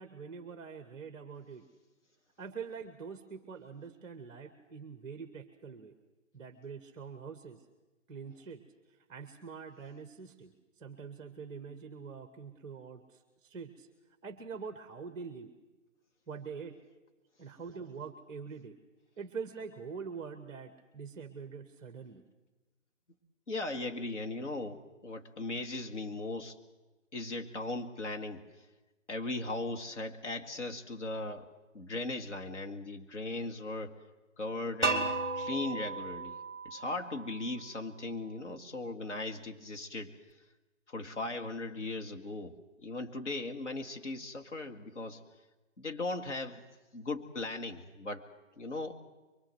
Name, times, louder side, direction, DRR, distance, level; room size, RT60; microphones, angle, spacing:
voice 1, 0.0-1.6 2.4-5.9 6.3-7.6 8.1-8.6 9.1-10.5 10.8-13.9 14.2-15.5 16.3-16.8 17.4-18.8 19.2-22.2, right 5 dB, 10° right, 7 dB, 0.9 m, -44 dB
voice 2, 23.5-26.6 27.1-28.4 29.1-31.5 31.7-34.0 34.4-36.4 36.6-40.1 40.9-45.2 45.8-46.6 46.9-48.2 48.6-49.0, left 2 dB, 65° left, 4 dB, 2.4 m, -38 dB
sound 1, 34.8-37.7, right 3 dB, 10° left, 1.9 m, -35 dB
23.5 x 22.5 x 7.9 m, 1.1 s
figure-of-eight pair, 145°, 38 cm